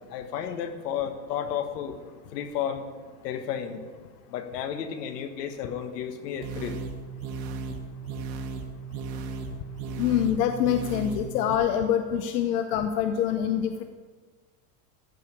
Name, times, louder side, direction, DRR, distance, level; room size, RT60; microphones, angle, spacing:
voice 1, 0.1-2.0 2.3-2.9 3.2-3.8 4.3-6.8, left 8 dB, 90° left, 7 dB, 1.6 m, -32 dB
sound 1, 6.4-11.6, right 4 dB, 45° right, 1.2 m, -36 dB
voice 2, 10.0-13.8, left 9 dB, 70° left, 7 dB, 0.9 m, -25 dB
14.5 x 5.2 x 8.7 m, 1.4 s
supercardioid pair, 180°, 47 cm